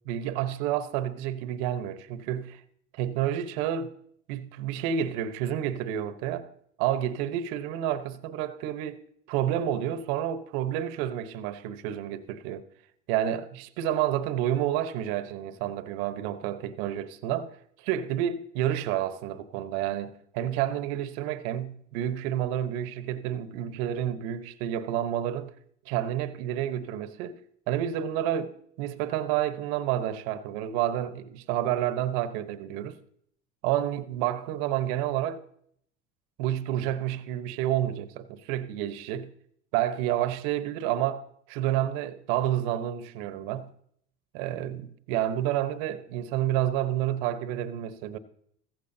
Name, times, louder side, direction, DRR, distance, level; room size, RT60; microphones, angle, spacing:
voice 1, 0.1-2.6 2.9-3.9 4.3-6.5 6.8-9.0 9.3-12.6 13.1-17.5 17.8-25.5 25.9-27.4 27.7-33.0 33.6-35.4 36.4-39.3 39.7-41.2 41.5-43.7 44.3-48.2, right 11 dB, 70° right, 1.1 m, -29 dB
15.5 x 15.0 x 2.8 m
hypercardioid pair, 85°, 31 cm